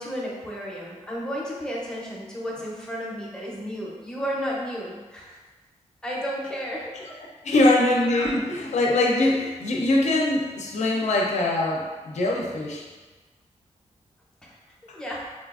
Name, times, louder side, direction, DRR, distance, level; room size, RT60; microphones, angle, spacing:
voice 1, 0.0-5.4 6.0-7.0 7.5-7.8 14.4-14.6 14.9-15.3, equal, 5° left, -5 dB, 0.6 m, -33 dB
voice 2, 7.4-12.8, left 2 dB, 65° left, -1 dB, 0.5 m, -22 dB
3.8 x 2.4 x 2.4 m, 1.3 s
wide cardioid pair, 150°, 13 cm